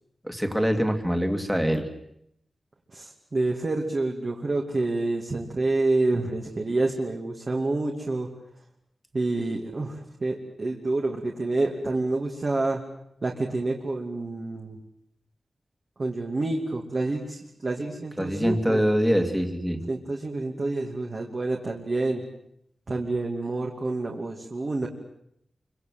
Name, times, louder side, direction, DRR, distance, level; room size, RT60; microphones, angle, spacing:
voice 1, 0.2-1.9 18.2-19.8, equal, ahead, 5 dB, 2.5 m, -24 dB
voice 2, 2.9-8.3 9.1-12.8 13.2-14.8 16.0-18.8 19.9-22.2 22.9-24.9, right 2 dB, 35° right, 0 dB, 2.6 m, -28 dB
28.5 x 24.5 x 7.8 m, 0.75 s
wide cardioid pair, 180°, 0 cm